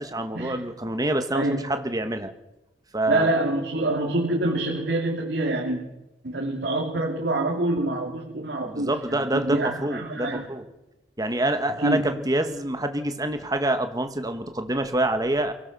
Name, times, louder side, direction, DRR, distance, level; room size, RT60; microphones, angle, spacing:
voice 1, 0.0-2.3 2.9-3.3 8.6-10.7 11.2-15.5, right 1 dB, 20° right, 7 dB, 1.7 m, -26 dB
voice 2, 1.3-1.6 3.1-5.8 6.2-10.4 11.8-12.0, right 1 dB, 65° right, -2 dB, 2.8 m, -26 dB
23.5 x 17.0 x 6.4 m, 0.94 s
head